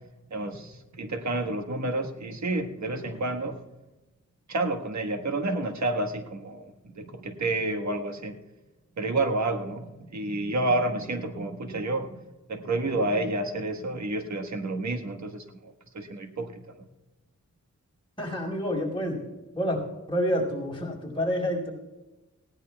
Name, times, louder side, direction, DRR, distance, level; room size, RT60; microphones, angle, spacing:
voice 1, 0.3-3.6 4.5-8.3 9.0-12.2 12.5-16.9, right 2 dB, 70° right, 5 dB, 1.5 m, -30 dB
voice 2, 18.2-19.2 19.5-19.8 20.1-21.7, equal, 15° left, -2 dB, 4.9 m, -28 dB
19.5 x 16.5 x 2.3 m, 1.1 s
wide cardioid pair, 120°, 30 cm